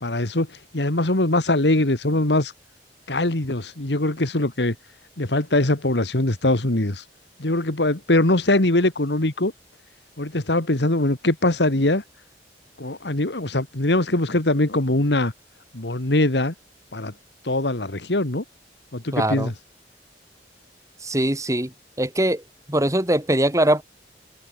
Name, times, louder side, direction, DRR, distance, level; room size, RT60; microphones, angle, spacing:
voice 1, 0.0-2.5 3.1-4.8 5.2-7.0 7.4-9.5 10.2-12.0 12.8-15.3 15.7-16.5 16.9-17.1 17.4-18.4 18.9-19.5, left 1 dB, 80° left, 2.2 m, -22 dB
voice 2, 19.1-19.5 21.0-21.7 22.0-22.4 22.7-23.8, right 1 dB, 20° right, 4.7 m, -21 dB
open air
head